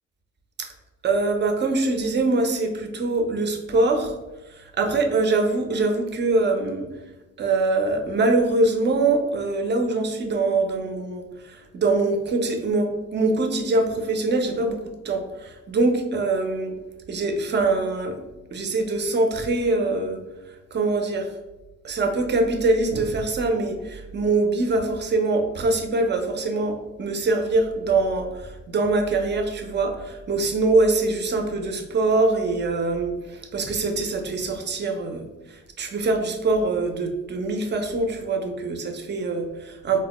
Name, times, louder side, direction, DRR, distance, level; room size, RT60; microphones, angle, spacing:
voice 1, 1.0-4.2 4.5-6.9 7.4-16.7 17.1-18.2 18.5-20.2 20.7-21.3 21.8-40.0, right 3 dB, 35° right, 5 dB, 0.6 m, -23 dB
4.1 x 2.1 x 2.9 m, 1.1 s
cardioid pair, 90°, 30 cm